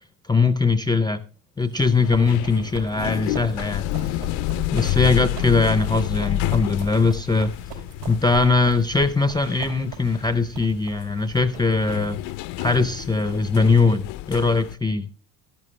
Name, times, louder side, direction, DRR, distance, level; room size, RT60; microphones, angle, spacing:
voice 1, 0.3-1.2 1.6-3.9 4.7-7.5 8.1-12.2 12.6-15.1, left 4 dB, 10° left, 0.4 m, -21 dB
Run, 1.6-13.9, right 6 dB, 75° right, 4.9 m, -40 dB
sound 1, 2.0-14.7, left 15 dB, 75° left, 0.5 m, -29 dB
12.5 x 12.0 x 3.1 m
cardioid pair, 110°, 44 cm